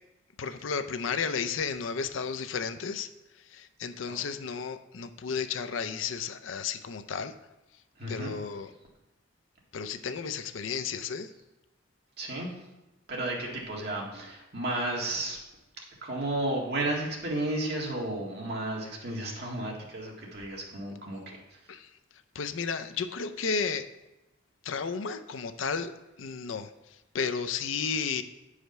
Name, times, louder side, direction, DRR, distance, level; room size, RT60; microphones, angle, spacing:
voice 1, 0.4-3.1 3.5-7.3 8.1-8.7 9.7-11.3 21.7-21.9 22.3-23.9 24.6-25.9 26.2-26.7 27.1-28.2, left 5 dB, 75° left, 10 dB, 0.5 m, -33 dB
voice 2, 8.0-8.3 12.2-12.6 13.1-15.4 16.0-21.6, right 1 dB, 55° right, -2 dB, 1.8 m, -33 dB
9.1 x 4.9 x 5.4 m, 0.99 s
head